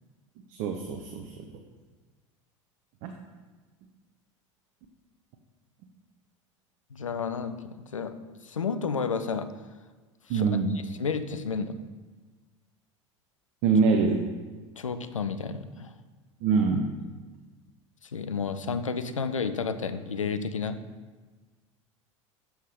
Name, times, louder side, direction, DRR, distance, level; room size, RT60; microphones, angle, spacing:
voice 1, 0.5-1.4 3.0-3.1 10.3-10.7 13.6-14.2 16.4-16.9, right 5 dB, 50° right, 4 dB, 0.6 m, -24 dB
voice 2, 6.9-8.1 8.4-9.5 10.3-10.6 11.0-11.7 14.8-15.9 18.0-20.8, left 5 dB, 85° left, 10 dB, 0.5 m, -31 dB
7.3 x 5.6 x 3.3 m, 1.4 s
figure-of-eight pair, 80°, 16 cm